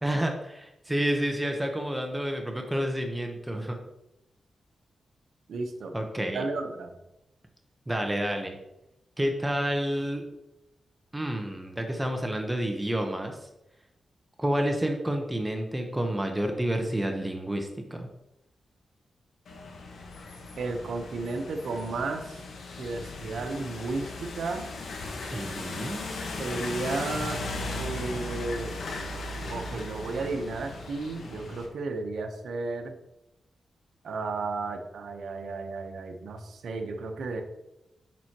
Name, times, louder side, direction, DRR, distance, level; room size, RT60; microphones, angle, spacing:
voice 1, 0.0-3.8 5.9-6.4 7.9-8.6 9.2-10.2 11.1-13.4 14.4-18.1 25.3-26.0, right 1 dB, 10° right, 4 dB, 0.9 m, -29 dB
voice 2, 5.5-5.9 6.3-6.9 20.6-22.4 22.8-24.6 26.4-27.4 27.8-28.8 29.5-33.0 34.0-37.4, right 3 dB, 80° right, 5 dB, 0.9 m, -33 dB
sound 1, 19.5-31.7, left 2 dB, 85° left, 1.3 m, -37 dB
7.5 x 6.2 x 2.9 m, 0.89 s
cardioid pair, 80°, 0 cm